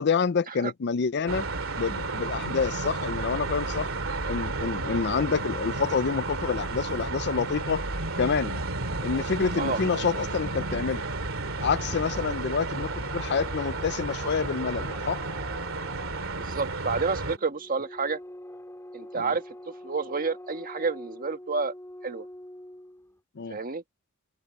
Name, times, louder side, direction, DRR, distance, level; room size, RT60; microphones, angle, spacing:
voice 1, 0.0-1.5 1.8-3.9 4.3-7.8 8.2-8.6 9.0-11.0 11.6-15.2 19.1-19.3 23.4-23.6, left 5 dB, 55° left, 0.5 m, -28 dB
sound 1, 1.3-17.4, right 3 dB, 70° right, 2.7 m, -32 dB
sound 2, 9.4-23.2, left 1 dB, 15° left, 3.5 m, -47 dB
voice 2, 16.4-18.2 18.9-19.4 19.8-21.7 22.0-22.3 23.5-23.8, right 4 dB, 40° right, 1.5 m, -29 dB
head